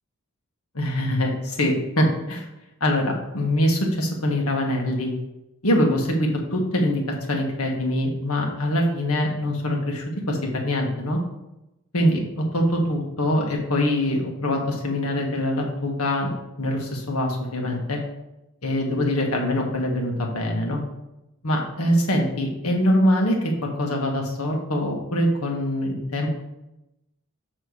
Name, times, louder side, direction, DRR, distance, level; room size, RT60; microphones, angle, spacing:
voice 1, 0.7-2.4 2.8-5.1 5.6-7.0 7.3-11.2 11.9-16.3 16.6-18.0 18.6-20.8 21.4-23.4 23.6-26.3, left 1 dB, 85° left, 0 dB, 1.7 m, -23 dB
7.7 x 3.4 x 6.4 m, 0.91 s
head